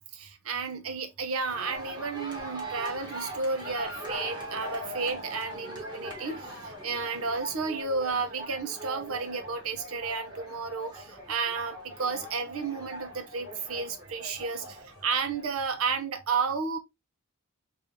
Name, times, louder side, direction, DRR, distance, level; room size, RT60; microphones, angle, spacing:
voice 1, 0.1-16.8, right 4 dB, 75° right, 0.8 m, -32 dB
sound 1, 1.5-15.8, right 1 dB, 20° right, 1.1 m, -41 dB
3.6 x 2.6 x 3.0 m
head